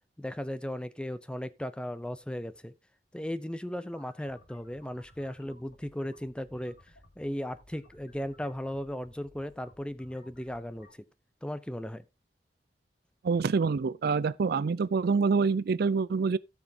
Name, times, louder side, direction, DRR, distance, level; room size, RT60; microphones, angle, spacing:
voice 1, 0.2-2.7 3.1-6.8 7.2-10.9 11.4-12.0, equal, 5° left, 0.5 m, -36 dB
sound 1, 3.8-10.9, left 1 dB, 70° left, 3.2 m, -59 dB
voice 2, 13.2-16.4, right 5 dB, 60° right, 0.4 m, -26 dB
16.5 x 6.1 x 2.8 m
head